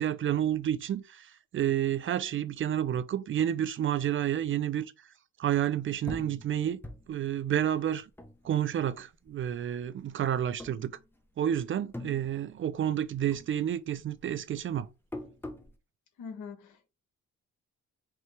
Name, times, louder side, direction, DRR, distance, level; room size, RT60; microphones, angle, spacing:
voice 1, 0.0-4.9 5.4-6.8 7.1-8.1 8.4-11.0 11.4-14.9, right 10 dB, 45° right, 0.4 m, -30 dB
sound 1, 6.1-8.9 9.3-10.1 10.5-11.4 11.7-13.0 13.3-15.8, left 1 dB, 5° left, 0.7 m, -44 dB
voice 2, 16.2-16.9, left 6 dB, 75° left, 1.2 m, -43 dB
4.6 x 2.8 x 3.2 m
cardioid pair, 90°, 30 cm